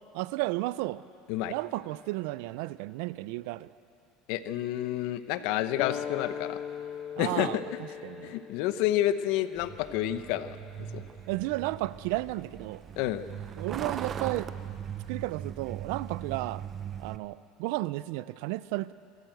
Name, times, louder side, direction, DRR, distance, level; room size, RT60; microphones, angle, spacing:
voice 1, 0.1-1.0 1.5-3.7 7.2-8.4 11.3-12.8 13.6-14.8 15.1-16.6 17.0-18.9, right 18 dB, 75° right, 17 dB, 0.5 m, -33 dB
voice 2, 4.3-6.6 7.2-7.5 8.2-10.6 10.9-11.0 13.0-13.2, left 13 dB, 70° left, 12 dB, 0.8 m, -29 dB
sound 1, 5.8-10.9, left 8 dB, 40° left, 1.0 m, -40 dB
Truck, 9.6-17.2, right 8 dB, 30° right, 0.7 m, -39 dB
25.0 x 13.0 x 7.9 m, 2.8 s
supercardioid pair, 130°, 0 cm